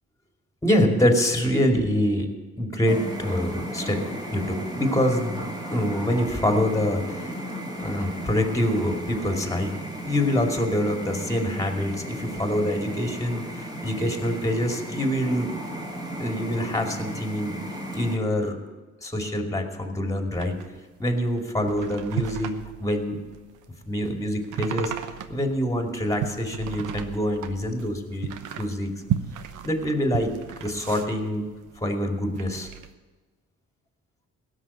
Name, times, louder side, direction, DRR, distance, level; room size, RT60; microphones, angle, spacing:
voice 1, 0.6-2.3 2.6-4.0 4.3-7.3 7.7-9.7 10.0-15.5 16.2-17.6 17.9-18.6 19.0-20.6 21.0-23.2 23.8-28.3 28.6-28.9 29.6-31.5 31.8-32.7, left 1 dB, 10° left, 3 dB, 2.4 m, -25 dB
sound 1, 2.9-18.2, equal, 15° right, 2.6 m, -35 dB
sound 2, 20.3-31.9 32.2-32.9, right 10 dB, 80° right, 1.0 m, -35 dB
16.5 x 6.5 x 8.4 m, 1.3 s
cardioid pair, 90°, 30 cm